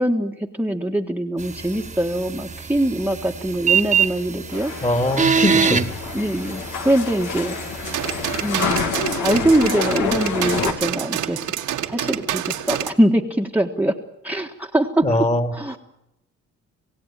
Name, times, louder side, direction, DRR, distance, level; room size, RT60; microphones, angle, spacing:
voice 1, 0.0-4.7 5.5-5.8 6.1-7.6 8.4-8.9 9.2-11.5 11.8-13.9 14.2-15.0 15.5-15.8, right 1 dB, 5° right, 1 dB, 1.6 m, -22 dB
sound 1, 1.4-8.6, right 6 dB, 25° right, 1.5 m, -25 dB
sound 2, 4.5-10.7, left 6 dB, 75° left, 2.8 m, -28 dB
voice 2, 4.8-6.0 15.0-15.5, left 1 dB, 20° left, 7 dB, 2.8 m, -21 dB
sound 3, 7.8-12.9, right 11 dB, 80° right, 1.9 m, -27 dB
27.5 x 16.5 x 9.0 m, 0.86 s
cardioid pair, 90°, 30 cm